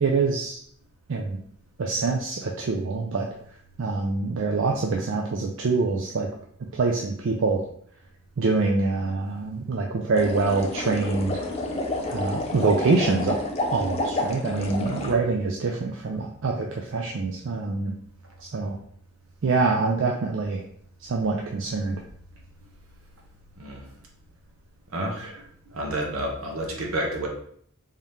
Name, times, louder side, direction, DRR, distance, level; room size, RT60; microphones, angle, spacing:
voice 1, 0.0-0.6 1.1-1.4 1.8-3.3 3.8-6.3 6.7-7.6 8.4-11.4 12.1-13.4 13.7-17.9 18.4-18.7 19.4-20.6 21.1-22.0, right 3 dB, 60° right, 0 dB, 0.4 m, -25 dB
sound 1, 10.1-15.1, left 2 dB, 30° left, 0.4 m, -29 dB
voice 2, 14.8-15.2 23.6-23.8 24.9-25.4 25.7-27.3, right 1 dB, 75° right, 0 dB, 0.9 m, -30 dB
3.6 x 2.8 x 3.4 m, 0.63 s
head